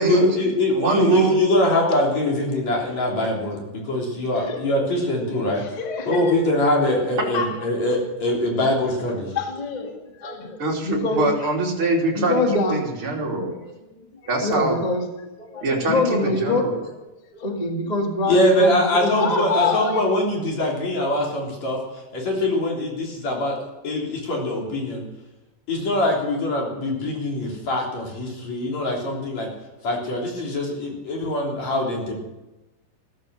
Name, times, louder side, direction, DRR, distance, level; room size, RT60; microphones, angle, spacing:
voice 1, 0.0-5.6 6.1-9.3 18.3-21.8 22.1-23.6 23.8-25.0 25.7-29.5 29.8-32.2, left 1 dB, 50° left, -1 dB, 4.6 m, -23 dB
voice 2, 0.7-1.4 10.6-12.4 12.7-13.5 14.3-14.8 15.6-16.8, right 2 dB, 40° right, -2 dB, 3.7 m, -23 dB
voice 3, 5.3-6.5 6.8-6.9 7.3-7.6 9.0-11.5 12.1-12.8 13.5-14.0 14.4-16.7 17.3-20.0, left 3 dB, 35° left, 3 dB, 0.7 m, -26 dB
15.0 x 14.0 x 6.4 m, 1.0 s
omnidirectional pair, 4.1 m